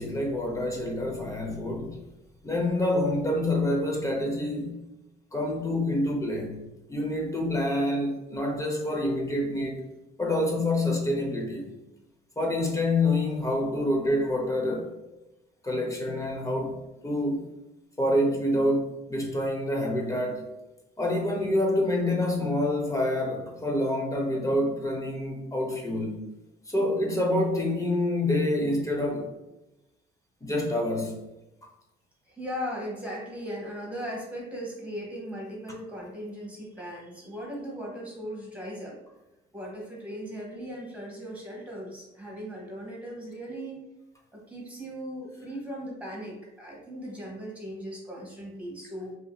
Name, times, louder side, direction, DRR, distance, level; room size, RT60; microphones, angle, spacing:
voice 1, 0.0-2.0 2.4-4.8 5.3-6.6 6.9-9.9 10.2-11.7 12.4-14.9 15.6-17.5 18.0-20.4 21.0-26.2 26.7-29.3 30.4-31.2, left 1 dB, 15° left, 0.7 m, -27 dB
voice 2, 32.3-39.0 39.5-43.8 44.3-49.2, equal, 5° right, 1.3 m, -38 dB
2.8 x 2.7 x 2.3 m
cardioid pair, 80°, 20 cm